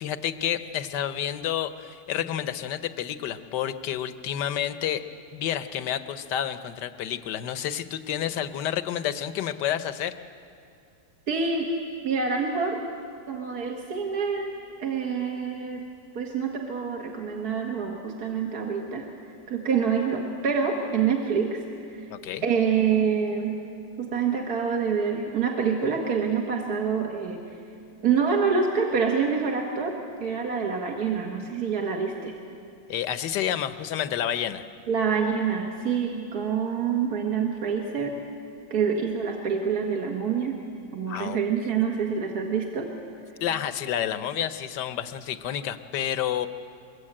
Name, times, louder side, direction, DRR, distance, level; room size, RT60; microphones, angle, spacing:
voice 1, 0.0-5.1 5.3-10.1 22.1-22.4 32.9-34.7 41.1-41.4 43.4-46.5, left 10 dB, 65° left, 11 dB, 1.4 m, -29 dB
voice 2, 11.3-11.7 12.0-12.8 13.3-15.9 16.1-19.1 19.5-21.6 21.9-22.1 22.4-23.6 24.0-27.5 28.0-32.4 34.9-38.2 38.7-40.6 40.9-42.9, right 6 dB, 55° right, 1 dB, 2.1 m, -26 dB
23.0 x 22.5 x 8.7 m, 2.5 s
omnidirectional pair, 2.1 m